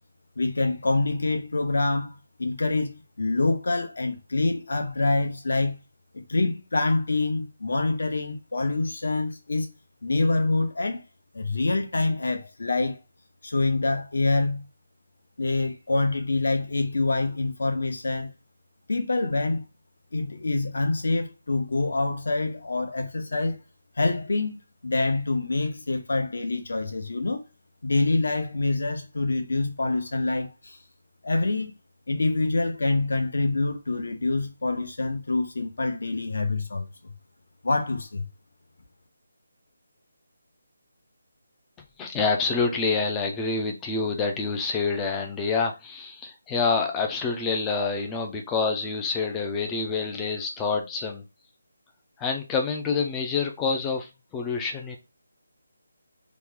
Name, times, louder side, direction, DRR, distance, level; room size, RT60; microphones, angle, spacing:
voice 1, 0.4-5.8 6.1-9.7 10.0-11.0 11.3-13.0 13.4-14.7 15.4-18.3 18.9-19.6 20.1-23.6 24.0-27.4 27.8-30.8 31.2-31.7 32.1-37.1 37.6-38.3, left 2 dB, 60° left, 0.9 m, -26 dB
voice 2, 42.0-51.2 52.2-55.0, left 4 dB, 5° left, 0.3 m, -27 dB
3.0 x 2.2 x 3.6 m
hypercardioid pair, 175°, 0 cm